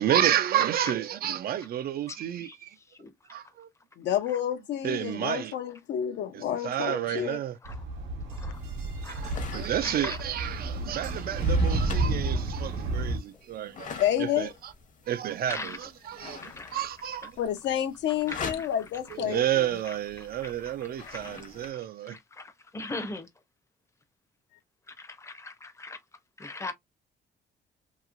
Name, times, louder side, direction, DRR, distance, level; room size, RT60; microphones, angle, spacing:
voice 1, 0.0-2.7 3.3-3.7 4.8-5.5 6.3-7.6 9.1-14.7 15.1-15.7 16.1-16.4 16.7-17.3 19.3-22.2, right 11 dB, 55° right, 0.4 m, -30 dB
voice 2, 2.1-3.4 4.3-4.4 7.6-7.8 8.3-8.6 9.0-9.4 9.8-10.2 12.0-12.1 15.5-15.9 16.4-16.8 18.3-18.7 19.0-19.2 19.8-20.5 20.8-23.3 24.9-26.7, left 3 dB, 15° left, 0.6 m, -41 dB
voice 3, 4.0-7.4 14.0-14.5 17.4-19.4 19.7-19.8, left 10 dB, 75° left, 0.7 m, -29 dB
sound 1, 7.7-13.2, right 2 dB, 85° right, 1.1 m, -30 dB
sound 2, 8.5-21.7, left 5 dB, 45° left, 0.9 m, -45 dB
2.9 x 2.8 x 2.4 m
cardioid pair, 120°, 19 cm